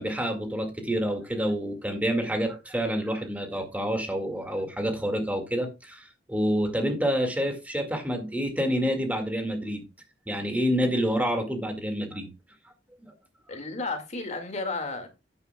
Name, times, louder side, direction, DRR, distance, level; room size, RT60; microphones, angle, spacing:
voice 1, 0.0-9.8 10.3-12.3 13.0-13.1, equal, 10° right, 2.0 m, -28 dB
voice 2, 13.5-15.1, left 3 dB, 40° left, 2.1 m, -33 dB
12.5 x 9.5 x 2.3 m
head